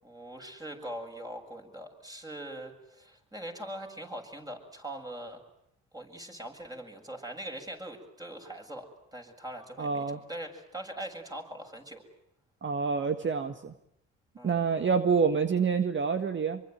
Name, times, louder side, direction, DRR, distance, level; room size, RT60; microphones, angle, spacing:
voice 1, 0.0-5.4 5.9-12.0 14.4-14.7, right 1 dB, 10° right, 2 dB, 7.6 m, -42 dB
voice 2, 9.8-10.2 12.6-13.7 14.4-16.6, right 5 dB, 40° right, 8 dB, 1.8 m, -27 dB
26.0 x 24.0 x 9.4 m, 0.79 s
cardioid pair, 90°, 30 cm